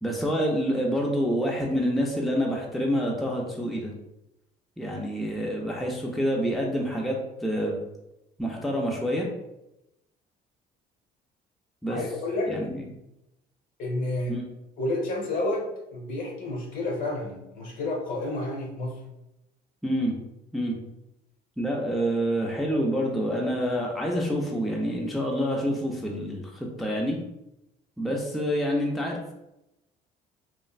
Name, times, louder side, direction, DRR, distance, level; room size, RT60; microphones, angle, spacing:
voice 1, 0.0-3.9 4.8-7.8 8.4-9.3 11.8-12.0 12.5-12.9 14.3-14.4 19.8-20.1 20.5-20.8 21.6-27.2 28.0-29.3, equal, ahead, -1 dB, 0.4 m, -27 dB
voice 2, 11.9-12.5 13.8-14.3 14.8-19.0, left 2 dB, 55° left, -1 dB, 0.9 m, -30 dB
3.1 x 2.4 x 2.3 m, 0.90 s
cardioid pair, 110°, 17 cm